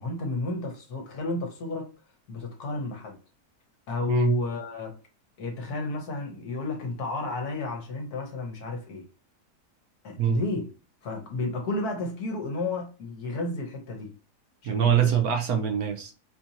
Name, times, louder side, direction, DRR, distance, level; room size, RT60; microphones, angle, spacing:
voice 1, 0.0-1.9 2.3-3.2 3.9-5.0 5.4-9.0 10.0-10.7 11.0-14.1 14.6-15.1 15.5-15.6, left 3 dB, 65° left, 1.5 m, -32 dB
voice 2, 4.1-4.4 10.2-10.4 14.6-16.1, right 9 dB, 70° right, 1.0 m, -24 dB
4.5 x 2.6 x 2.8 m
omnidirectional pair, 1.8 m